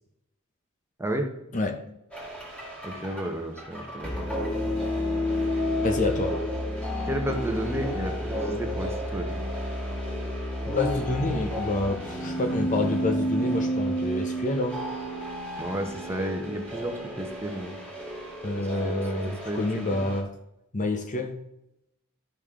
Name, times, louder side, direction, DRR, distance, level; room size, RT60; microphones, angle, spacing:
sound 1, 2.1-20.2, equal, 5° left, 1.8 m, -31 dB
voice 1, 2.8-4.3 7.0-9.4 15.6-17.8 18.6-20.0, right 1 dB, 10° right, 3 dB, 1.1 m, -32 dB
voice 2, 5.8-6.3 10.7-14.8 18.4-20.3 20.7-21.4, left 2 dB, 40° left, 5 dB, 0.8 m, -28 dB
12.0 x 5.3 x 3.7 m, 0.84 s
head